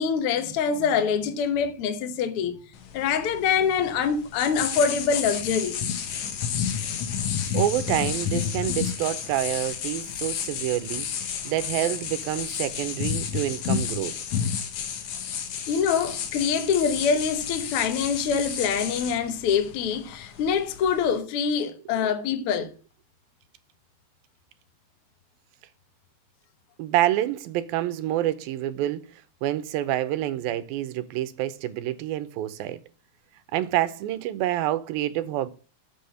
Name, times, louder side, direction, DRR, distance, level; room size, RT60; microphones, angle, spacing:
voice 1, 0.0-2.5 2.9-5.8 15.7-22.7, left 6 dB, 90° left, 1.2 m, -25 dB
sound 1, 2.7-21.2, left 7 dB, 65° left, 2.1 m, -31 dB
voice 2, 7.5-14.1 26.8-29.1 29.4-32.8 33.5-35.5, right 13 dB, 80° right, 2.5 m, -27 dB
7.1 x 6.3 x 7.7 m
omnidirectional pair, 4.3 m